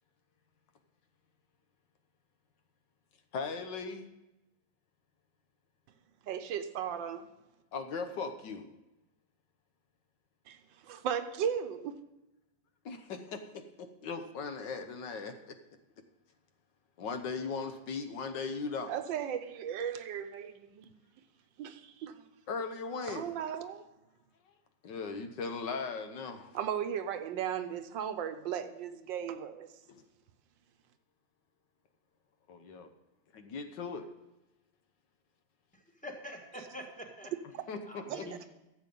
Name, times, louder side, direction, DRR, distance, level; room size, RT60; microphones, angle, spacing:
voice 1, 3.3-4.0 7.7-8.7 12.8-13.4 14.0-15.5 17.0-19.0 22.5-23.3 24.8-26.5 29.9-30.0 32.5-32.9 33.3-34.0 37.7-37.8, left 4 dB, 70° left, 1.6 m, -38 dB
voice 2, 6.2-7.3 10.5-10.6 10.8-12.0 18.9-20.9 21.6-22.3 23.0-23.9 26.5-29.7 38.1-38.5, right 9 dB, 80° right, 1.4 m, -36 dB
voice 3, 36.0-37.3 37.9-38.5, equal, 5° left, 1.3 m, -45 dB
13.0 x 7.7 x 5.3 m
omnidirectional pair, 2.1 m